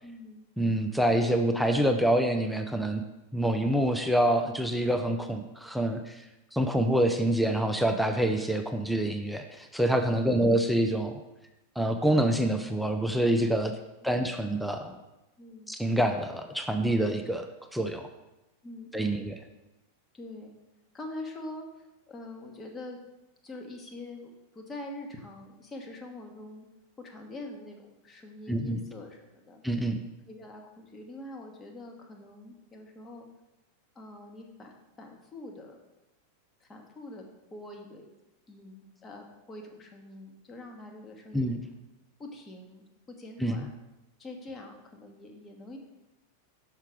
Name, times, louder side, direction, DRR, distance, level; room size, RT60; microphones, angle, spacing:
voice 1, 0.0-0.4 6.8-7.1 15.4-15.7 18.6-19.4 20.1-20.5 20.9-23.0 23.4-26.7 27.0-29.6 30.3-33.3 33.9-35.8 36.6-38.1 38.5-41.6 42.2-43.7 44.2-45.8, left 2 dB, 20° left, 2 dB, 1.2 m, -44 dB
voice 2, 0.6-3.0 3.3-6.3 6.5-11.2 11.8-13.7 14.0-15.0 15.7-18.1 18.9-19.3 28.5-28.8 29.6-30.0 41.3-41.6 43.4-43.6, right 1 dB, ahead, 5 dB, 0.5 m, -26 dB
5.9 x 5.7 x 4.7 m, 0.98 s
figure-of-eight pair, 90°, 0 cm